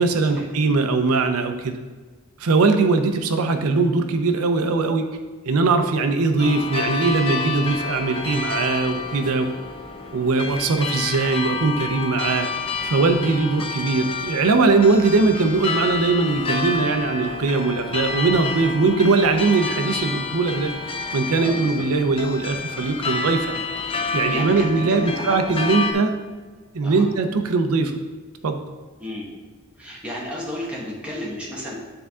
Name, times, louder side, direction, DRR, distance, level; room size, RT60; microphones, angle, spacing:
voice 1, 0.0-1.8 2.4-5.0 5.5-9.5 10.1-12.5 12.8-20.7 21.1-26.1 26.7-27.9 28.4-28.6, right 3 dB, 80° right, 6 dB, 0.5 m, -20 dB
sound 1, 6.4-25.9, left 4 dB, 25° left, 0.4 m, -29 dB
voice 2, 21.4-21.8 24.3-25.8 26.8-27.0 29.0-29.3 29.8-31.8, left 1 dB, 5° right, -5 dB, 1.3 m, -33 dB
9.8 x 3.5 x 3.6 m, 1.4 s
head